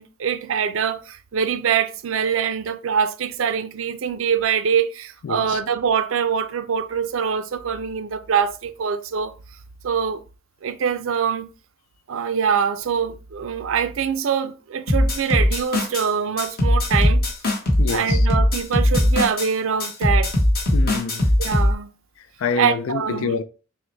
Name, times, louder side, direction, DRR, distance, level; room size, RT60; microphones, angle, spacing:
voice 1, 0.0-9.3 9.8-10.2 10.6-11.5 12.1-17.2 17.9-20.3 21.4-21.9 22.6-23.4, right 7 dB, 70° right, 0.4 m, -24 dB
voice 2, 5.2-5.6 17.8-18.3 20.7-21.3 22.4-23.4, left 5 dB, 75° left, 0.4 m, -26 dB
sound 1, 14.9-16.1 16.4-19.5 19.8-21.7, left 1 dB, 45° left, 1.2 m, -19 dB
6.0 x 2.1 x 3.2 m
head